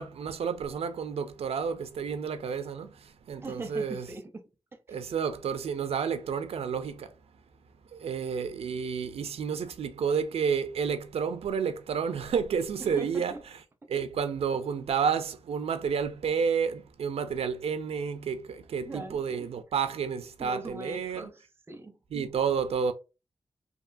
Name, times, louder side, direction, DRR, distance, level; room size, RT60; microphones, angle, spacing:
voice 1, 0.0-4.1 4.9-7.1 7.9-13.3 13.9-21.3 22.1-22.9, right 6 dB, 90° right, 0.4 m, -30 dB
voice 2, 3.4-4.4 4.7-5.0 12.8-13.4 13.8-13.9 18.8-19.5 20.4-22.3, right 2 dB, 25° right, 0.5 m, -41 dB
2.9 x 2.6 x 2.5 m
wide cardioid pair, 130°, 10 cm